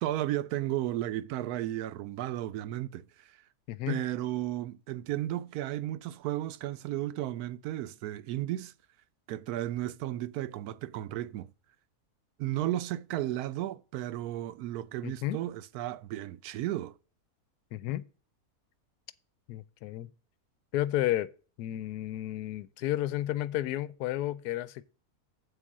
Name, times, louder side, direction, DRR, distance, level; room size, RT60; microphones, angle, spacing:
voice 1, 0.0-3.3 3.9-8.7 9.3-11.5 12.4-16.9, right 14 dB, 75° right, 1.1 m, -34 dB
voice 2, 3.7-4.0 15.0-15.4 17.7-18.1 19.5-20.1 20.7-21.3 21.6-24.8, left 14 dB, 90° left, 1.1 m, -32 dB
7.9 x 4.9 x 7.2 m
omnidirectional pair, 1.6 m